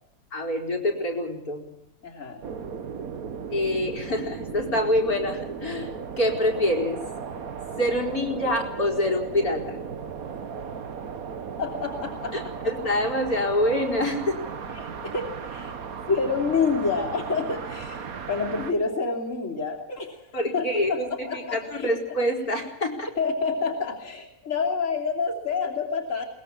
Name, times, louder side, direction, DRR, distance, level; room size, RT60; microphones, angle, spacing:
voice 1, 0.3-1.6 3.5-5.9 6.2-7.0 7.8-9.8 12.3-14.4 20.3-21.1 21.5-23.1, left 1 dB, 85° left, 0 dB, 4.8 m, -26 dB
voice 2, 2.0-2.4 11.6-12.7 14.7-15.7 16.1-20.2 20.5-21.9 23.2-26.3, left 4 dB, 60° left, -1 dB, 3.3 m, -28 dB
sound 1, 2.4-18.7, right 6 dB, 75° right, 1.8 m, -36 dB
22.5 x 20.5 x 7.3 m, 0.81 s
omnidirectional pair, 1.5 m